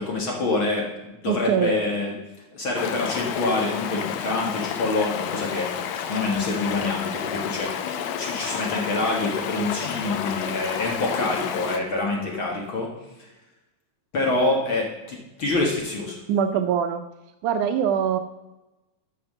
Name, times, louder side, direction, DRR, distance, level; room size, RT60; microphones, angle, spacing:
voice 1, 0.0-2.2 2.5-12.9 13.2-13.3 14.1-16.2, left 2 dB, 45° left, -1 dB, 2.1 m, -26 dB
voice 2, 1.3-1.8 16.3-17.0 17.4-18.2, right 8 dB, 75° right, 8 dB, 2.0 m, -23 dB
Stream, 2.7-11.8, left 8 dB, 80° left, 2.4 m, -30 dB
13.5 x 5.8 x 6.7 m, 1.0 s
omnidirectional pair, 3.8 m